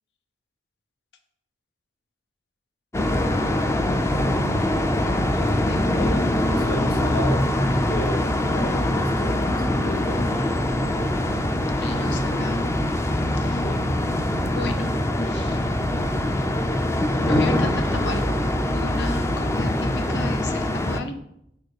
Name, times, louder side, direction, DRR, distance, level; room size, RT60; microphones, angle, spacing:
sound 1, 2.9-21.0, left 1 dB, 15° left, 0.5 m, -23 dB
voice 1, 5.3-10.2 13.6-13.9, left 1 dB, 55° left, 3 dB, 1.2 m, -33 dB
voice 2, 11.8-12.7 13.4-13.6 14.4-14.9 15.2-15.7 17.3-18.3 18.7-21.2, left 3 dB, 75° left, 7 dB, 0.9 m, -33 dB
6.6 x 6.1 x 4.8 m, 0.75 s
head